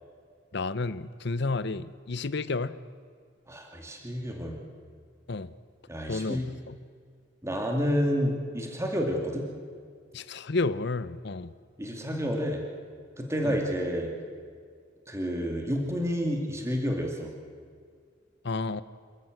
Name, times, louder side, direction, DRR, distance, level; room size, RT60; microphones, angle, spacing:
voice 1, 0.5-2.8 5.3-5.5 6.1-6.8 10.1-11.5 13.4-13.6 18.4-18.8, left 3 dB, 65° left, 15 dB, 0.8 m, -31 dB
voice 2, 3.5-4.6 5.9-6.5 7.4-9.4 11.8-12.6 13.2-14.1 15.1-17.3, equal, 15° right, 1 dB, 2.5 m, -29 dB
27.5 x 14.0 x 7.9 m, 2.1 s
head